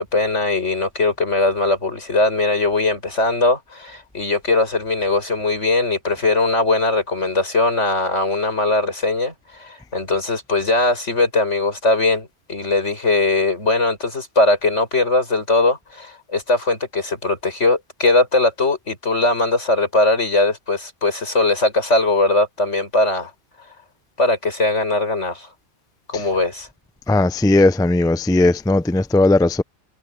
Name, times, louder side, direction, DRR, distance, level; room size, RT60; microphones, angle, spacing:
voice 1, 0.0-23.3 24.2-25.5 26.1-26.7, left 2 dB, 85° left, 6.3 m, -20 dB
voice 2, 27.1-29.6, left 2 dB, 5° left, 0.4 m, -17 dB
omnidirectional pair, 1.2 m